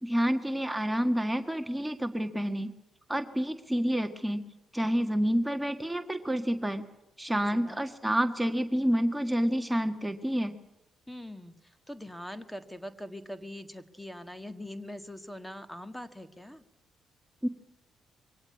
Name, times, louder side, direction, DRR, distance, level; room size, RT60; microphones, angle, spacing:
voice 1, 0.0-2.7 3.1-4.4 4.7-6.8 7.2-10.5 17.4-17.5, equal, 10° right, 6 dB, 1.5 m, -28 dB
voice 2, 7.3-7.9 11.1-16.6, left 1 dB, 5° left, 10 dB, 1.7 m, -43 dB
23.0 x 17.5 x 9.6 m, 0.94 s
supercardioid pair, 55°, 0 cm